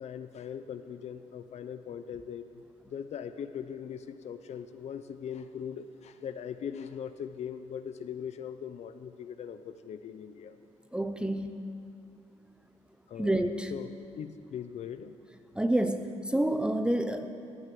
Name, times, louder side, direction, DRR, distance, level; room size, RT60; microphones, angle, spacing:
voice 1, 0.0-2.6 2.9-10.6 13.1-13.4 13.7-15.1, left 8 dB, 60° left, 10 dB, 0.6 m, -40 dB
voice 2, 10.9-11.6 13.2-13.7 15.6-17.3, right 1 dB, 5° right, 7 dB, 0.6 m, -28 dB
16.5 x 9.6 x 7.6 m, 2.7 s
cardioid pair, 110°, 13 cm